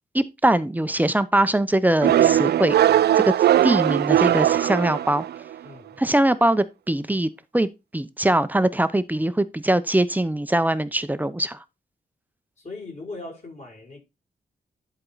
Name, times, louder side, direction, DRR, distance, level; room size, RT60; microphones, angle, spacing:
voice 1, 0.1-2.7 3.1-3.3 3.6-5.2 6.0-7.7 7.9-11.6, right 1 dB, 10° right, 0.7 m, -22 dB
sound 1, 2.0-5.5, right 11 dB, 80° right, 0.4 m, -19 dB
voice 2, 5.6-5.9 12.6-14.0, left 3 dB, 45° left, 6.2 m, -39 dB
11.0 x 4.4 x 4.0 m
cardioid pair, 80°, 17 cm